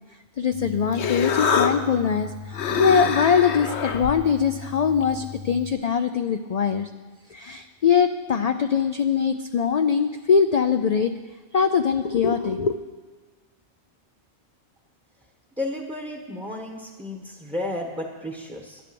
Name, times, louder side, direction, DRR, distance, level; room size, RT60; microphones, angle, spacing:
voice 1, 0.4-6.9 7.3-11.1 11.5-12.8, left 6 dB, 55° left, 8 dB, 0.4 m, -22 dB
Human voice, 0.5-5.7, left 6 dB, 75° left, 1.1 m, -28 dB
voice 2, 15.6-18.8, left 1 dB, 5° right, 0 dB, 1.0 m, -32 dB
11.0 x 10.0 x 6.9 m, 1.3 s
omnidirectional pair, 1.2 m